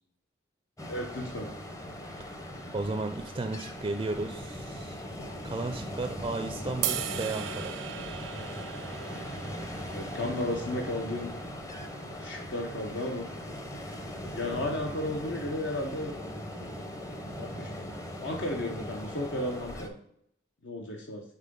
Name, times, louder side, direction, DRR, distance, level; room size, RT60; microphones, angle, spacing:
Ocean, 0.8-19.9, equal, 15° left, 0.7 m, -39 dB
voice 1, 0.9-1.5 9.9-11.3 12.2-13.3 14.3-16.2 17.4-17.7 18.2-20.0 20.6-21.2, left 1 dB, 70° left, 1 dB, 0.9 m, -34 dB
voice 2, 2.7-5.0 5.4-7.7, right 3 dB, 25° right, 7 dB, 0.4 m, -34 dB
sound 1, 6.8-13.1, right 9 dB, 90° right, 0.6 m, -39 dB
5.8 x 3.8 x 5.2 m, 0.72 s
head